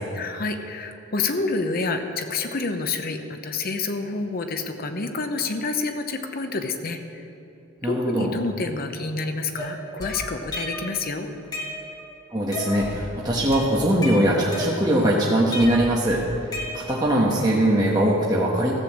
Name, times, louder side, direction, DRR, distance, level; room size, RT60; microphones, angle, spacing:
voice 1, 0.1-7.0 7.8-11.3, left 3 dB, 50° left, 7 dB, 0.9 m, -28 dB
voice 2, 7.8-8.3 12.3-16.2 16.7-18.7, right 1 dB, 20° right, -4 dB, 1.2 m, -21 dB
sound 1, 9.6-11.0 11.3-12.1 12.5-13.0 13.3-15.1 15.5-17.1, left 1 dB, 20° left, 1.8 m, -33 dB
14.0 x 6.9 x 7.5 m, 2.8 s
head